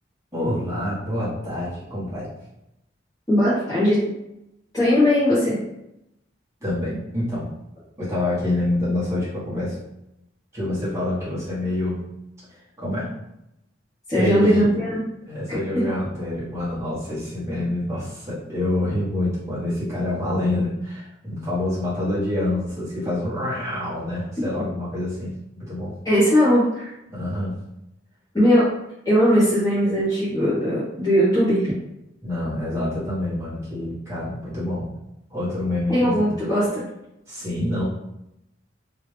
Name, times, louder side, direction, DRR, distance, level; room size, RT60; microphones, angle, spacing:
voice 1, 0.3-2.3 6.6-7.5 8.0-9.7 10.5-12.1 12.8-13.1 14.2-14.7 15.3-25.9 27.1-27.6 32.2-34.9 35.3-36.3 37.3-37.8, left 1 dB, 15° right, -10 dB, 1.5 m, -26 dB
voice 2, 3.3-4.0 4.7-5.6 14.1-15.0 15.5-15.8 26.0-26.9 28.3-28.7 29.0-31.7 35.9-36.8, equal, 20° left, -12 dB, 1.2 m, -19 dB
3.3 x 2.8 x 3.3 m, 0.85 s
head